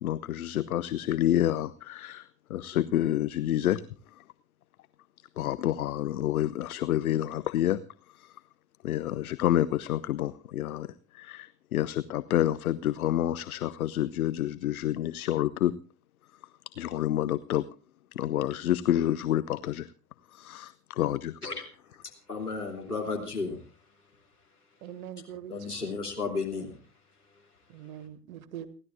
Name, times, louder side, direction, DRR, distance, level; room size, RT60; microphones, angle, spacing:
voice 1, 0.0-3.8 5.4-7.8 8.1-8.3 8.8-10.9 11.1-15.7 16.8-17.6 18.2-19.9 20.3-21.4, left 12 dB, 70° left, 15 dB, 0.7 m, -28 dB
voice 2, 22.3-23.6 25.5-26.8, left 4 dB, 90° left, -1 dB, 3.1 m, -33 dB
voice 3, 24.8-25.7 27.7-28.7, right 10 dB, 65° right, 13 dB, 1.6 m, -42 dB
29.5 x 12.0 x 2.5 m, 0.37 s
figure-of-eight pair, 70°, 44 cm